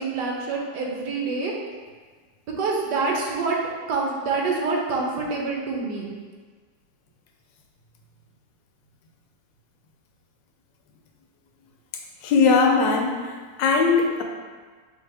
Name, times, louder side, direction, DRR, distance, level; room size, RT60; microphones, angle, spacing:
voice 1, 0.0-1.5 2.6-3.6 3.9-6.1, right 4 dB, 75° right, -1 dB, 1.4 m, -26 dB
voice 2, 12.2-13.2 13.6-14.2, left 4 dB, 85° left, 2 dB, 1.3 m, -19 dB
5.3 x 2.8 x 3.3 m, 1.5 s
omnidirectional pair, 1.9 m